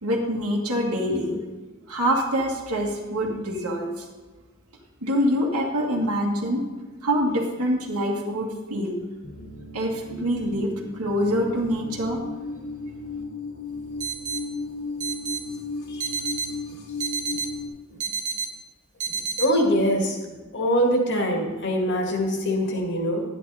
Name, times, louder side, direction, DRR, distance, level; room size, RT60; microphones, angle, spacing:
voice 1, 0.0-1.4 1.9-4.1 5.0-6.6 7.0-9.0 9.7-12.2, equal, 90° right, -2 dB, 1.9 m, -25 dB
sound 1, 9.2-17.7, left 3 dB, 75° left, 1.9 m, -35 dB
sound 2, 14.0-14.4 15.0-15.4 16.0-16.5 17.0-17.5 18.0-18.5 19.0-19.5, right 6 dB, 35° right, 1.0 m, -29 dB
voice 2, 19.1-20.2 20.5-23.2, equal, 55° left, 2 dB, 1.9 m, -23 dB
11.5 x 9.9 x 4.2 m, 1.3 s
head